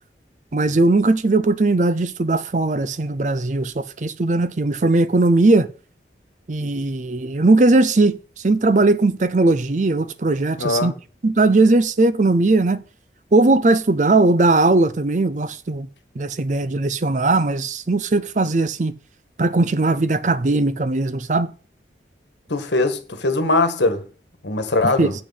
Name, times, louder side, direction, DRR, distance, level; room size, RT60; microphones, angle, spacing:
voice 1, 0.5-5.7 6.5-8.2 8.4-10.9 11.2-12.8 13.3-15.9 16.2-18.9 19.4-21.5 24.8-25.1, right 2 dB, 45° right, 0.5 m, -18 dB
voice 2, 10.6-10.9 22.5-24.0 24.4-25.1, left 2 dB, 85° left, 1.4 m, -21 dB
7.9 x 6.5 x 5.6 m
head